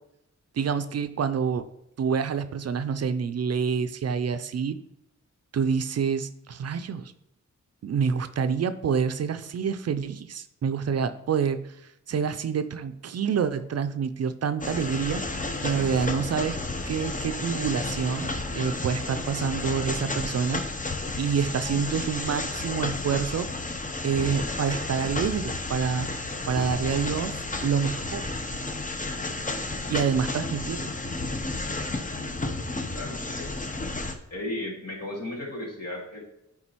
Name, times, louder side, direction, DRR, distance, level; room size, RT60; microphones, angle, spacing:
voice 1, 0.6-1.6 2.0-4.8 5.5-7.1 7.8-11.8 12.1-15.2 15.6-16.6 16.9-20.6 21.2-23.5 24.0-26.1 26.5-28.3 29.9-30.9, right 6 dB, 55° right, 11 dB, 0.5 m, -27 dB
sound 1, 14.6-34.2, left 2 dB, 25° left, 0.8 m, -32 dB
voice 2, 32.9-33.7 34.3-36.2, left 1 dB, 55° left, -2 dB, 2.2 m, -35 dB
8.8 x 3.7 x 3.0 m, 0.84 s
cardioid pair, 50°, 30 cm